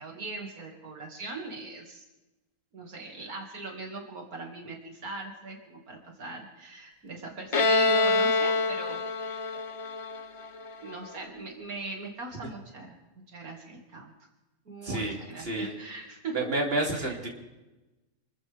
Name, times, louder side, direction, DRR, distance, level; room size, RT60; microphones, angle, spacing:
voice 1, 0.0-2.0 2.7-9.6 10.8-13.0 13.3-14.1 14.7-16.4 16.9-17.2, right 3 dB, 85° right, 1 dB, 2.8 m, -40 dB
Bowed string instrument, 7.5-11.1, left 3 dB, 30° left, 0.6 m, -26 dB
voice 2, 14.8-15.7 16.3-17.3, right 2 dB, 40° right, -1 dB, 3.5 m, -30 dB
27.5 x 14.0 x 3.6 m, 1.1 s
omnidirectional pair, 1.5 m